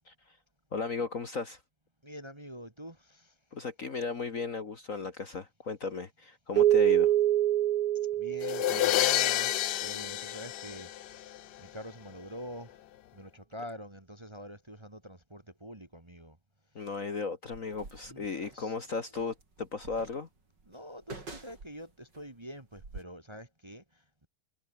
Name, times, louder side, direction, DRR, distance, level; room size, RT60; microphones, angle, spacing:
voice 1, 0.7-1.6 3.5-7.1 16.7-20.3, left 4 dB, 40° left, 1.7 m, -36 dB
voice 2, 2.0-3.3 8.1-10.9 11.6-12.8 13.1-16.4 18.0-19.1 20.7-24.3, equal, 15° right, 1.8 m, -46 dB
Keyboard (musical), 6.6-9.5, right 13 dB, 70° right, 0.9 m, -26 dB
sound 1, 8.4-11.4, left 15 dB, 75° left, 1.0 m, -29 dB
sound 2, 17.4-18.7 19.2-22.3 22.7-23.0, right 3 dB, 55° right, 5.3 m, -47 dB
omnidirectional pair, 2.3 m